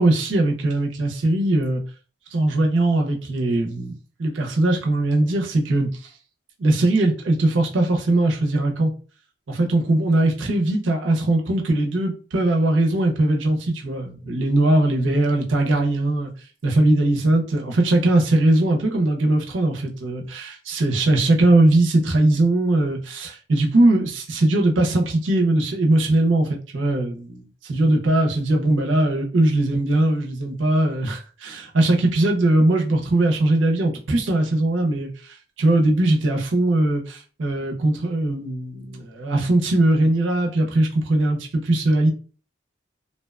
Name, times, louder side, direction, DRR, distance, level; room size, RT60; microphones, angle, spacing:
voice 1, 0.0-1.8 2.3-5.9 6.6-8.9 9.5-16.3 16.6-42.1, right 2 dB, 85° right, 2 dB, 0.6 m, -20 dB
2.6 x 2.1 x 2.3 m, 0.38 s
head